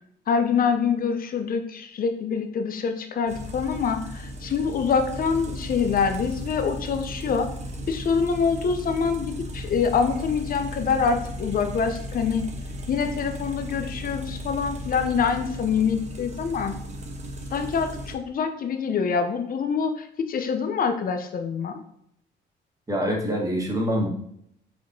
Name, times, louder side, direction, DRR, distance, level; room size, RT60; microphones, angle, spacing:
voice 1, 0.3-7.5 7.9-12.5 12.9-16.8 17.5-21.8, left 6 dB, 45° left, 7 dB, 0.6 m, -25 dB
sound 1, 3.3-18.1, equal, 35° right, 0.8 m, -36 dB
voice 2, 22.9-24.1, equal, 15° right, -1 dB, 1.4 m, -25 dB
4.7 x 4.1 x 2.7 m, 0.72 s
cardioid pair, 90°, 20 cm